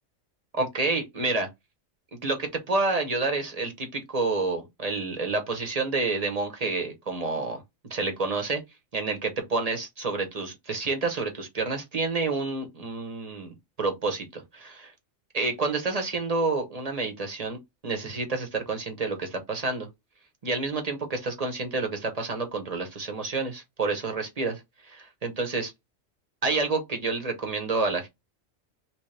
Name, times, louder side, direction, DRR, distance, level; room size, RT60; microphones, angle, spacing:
voice 1, 0.5-1.5 2.2-7.6 7.9-8.6 8.9-14.9 15.3-17.6 17.8-19.9 20.4-25.7 26.4-28.1, right 3 dB, 35° right, 0.9 m, -29 dB
3.0 x 3.0 x 3.2 m
omnidirectional pair, 1.3 m